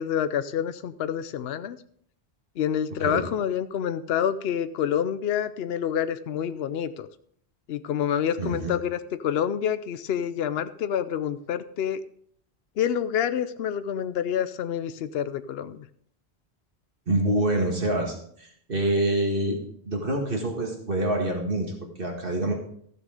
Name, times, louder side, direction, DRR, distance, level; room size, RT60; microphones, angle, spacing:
voice 1, 0.0-1.8 2.6-7.1 7.7-12.0 12.8-15.8, left 9 dB, 70° left, 13 dB, 0.9 m, -27 dB
voice 2, 8.4-8.7 17.1-22.5, right 1 dB, 55° right, 1 dB, 2.0 m, -26 dB
13.5 x 6.7 x 4.9 m, 0.63 s
omnidirectional pair, 1.1 m